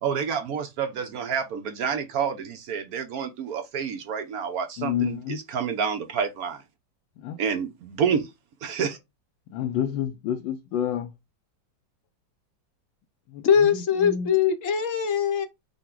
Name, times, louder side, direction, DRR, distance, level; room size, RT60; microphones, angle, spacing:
voice 1, 0.0-5.1 5.5-6.6 7.4-8.3 8.6-9.0, right 7 dB, 65° right, 1.1 m, -28 dB
voice 2, 4.8-5.4 7.2-7.4 9.5-11.1 13.3-14.3, left 9 dB, 85° left, 1.3 m, -29 dB
voice 3, 13.4-15.5, left 7 dB, 60° left, 0.9 m, -22 dB
5.7 x 2.2 x 3.7 m
omnidirectional pair, 2.0 m